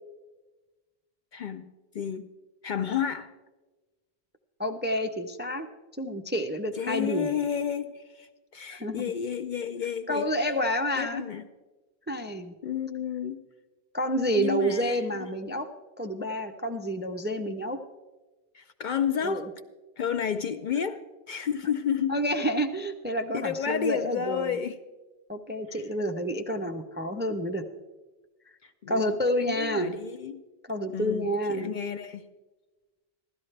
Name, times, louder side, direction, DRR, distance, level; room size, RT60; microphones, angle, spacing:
voice 1, 1.3-2.3 2.6-3.3 6.7-10.3 11.0-11.5 12.6-13.4 14.3-15.3 18.5-19.5 20.0-21.0 21.3-22.2 23.3-24.8 25.7-25.8 28.6-29.2 29.4-30.4 30.9-32.2, left 8 dB, 60° left, 8 dB, 0.6 m, -31 dB
voice 2, 4.6-5.7 6.0-7.4 8.7-9.1 10.1-11.2 12.1-12.5 13.9-15.7 16.0-17.8 19.2-19.5 22.1-24.6 25.3-27.6 28.9-30.0 30.7-31.7, equal, 15° right, 5 dB, 0.4 m, -29 dB
16.0 x 12.5 x 3.3 m, 1.2 s
omnidirectional pair, 1.1 m